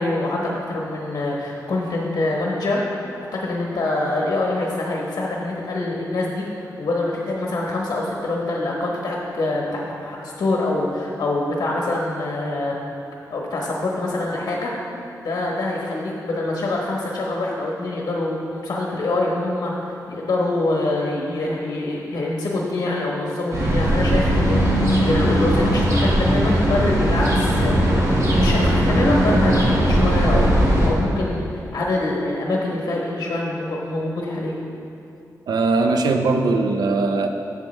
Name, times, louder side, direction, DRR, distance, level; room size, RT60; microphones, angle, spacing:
voice 1, 0.0-12.8 13.3-15.0 15.2-34.6, left 2 dB, 65° left, -2 dB, 1.1 m, -25 dB
sound 1, 23.5-30.9, equal, 50° right, 1.7 m, -18 dB
voice 2, 35.5-37.3, right 3 dB, 80° right, 5 dB, 0.7 m, -20 dB
11.5 x 7.6 x 3.3 m, 2.6 s
wide cardioid pair, 170°, 7 cm